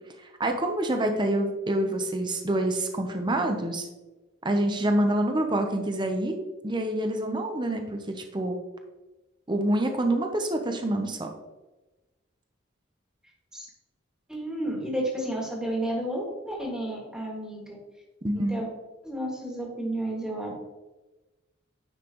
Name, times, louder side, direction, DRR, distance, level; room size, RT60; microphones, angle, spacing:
voice 1, 0.4-3.9 4.4-6.4 6.6-8.6 9.5-11.3 18.2-18.7, right 1 dB, 25° right, 5 dB, 0.8 m, -26 dB
voice 2, 14.3-17.8 18.3-18.6 19.0-20.5, right 1 dB, 5° right, -3 dB, 2.0 m, -31 dB
9.9 x 5.8 x 3.0 m, 1.1 s
head